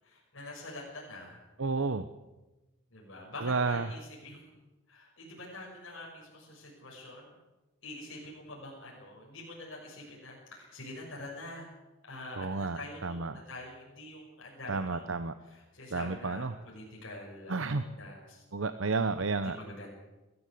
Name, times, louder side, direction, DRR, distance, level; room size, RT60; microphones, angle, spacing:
voice 1, 0.0-1.5 2.9-4.5 4.9-7.4 7.8-11.7 12.1-15.1 15.4-18.4 19.4-19.9, left 2 dB, 60° left, -3 dB, 6.3 m, -46 dB
voice 2, 1.6-2.1 3.4-3.9 12.4-13.4 14.7-15.3 15.9-16.5 17.5-17.8 18.5-19.6, right 3 dB, 65° right, 11 dB, 0.8 m, -31 dB
21.5 x 14.0 x 8.5 m, 1.1 s
head